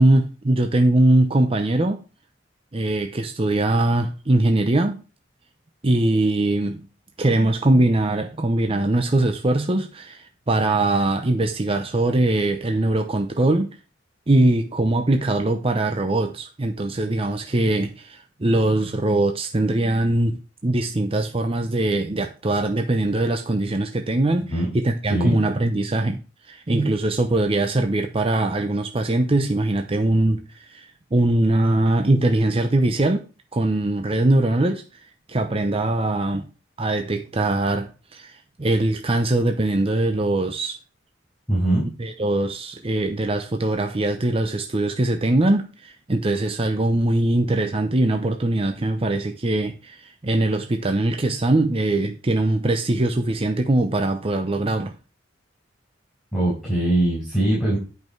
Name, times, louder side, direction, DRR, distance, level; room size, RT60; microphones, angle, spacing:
voice 1, 0.0-2.0 2.7-5.0 5.8-6.8 7.2-13.7 14.3-20.3 20.6-26.2 26.5-33.2 33.5-34.8 35.3-36.4 36.8-40.8 42.0-55.0, right 2 dB, 30° right, 0.7 m, -21 dB
voice 2, 41.5-41.9 56.3-57.8, right 1 dB, 5° right, 5.8 m, -21 dB
11.0 x 5.5 x 4.6 m
head